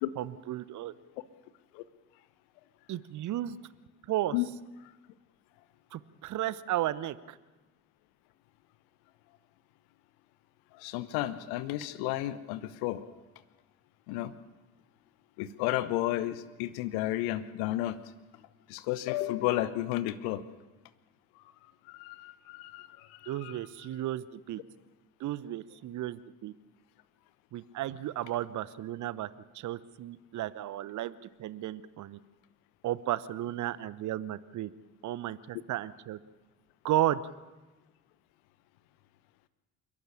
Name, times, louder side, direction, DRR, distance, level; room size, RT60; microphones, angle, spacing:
voice 1, 0.2-0.9 2.9-3.6 4.1-4.4 5.9-7.4 23.3-24.6 25.2-26.5 27.5-29.3 29.5-32.2 32.8-34.7 35.0-36.2 36.8-37.2, right 13 dB, 45° right, 17 dB, 0.9 m, -34 dB
voice 2, 10.7-13.1 14.1-14.3 15.4-18.0 18.7-20.4 21.9-23.6, left 15 dB, 60° left, 15 dB, 1.1 m, -32 dB
28.0 x 12.0 x 8.6 m, 1.2 s
figure-of-eight pair, 50°, 43 cm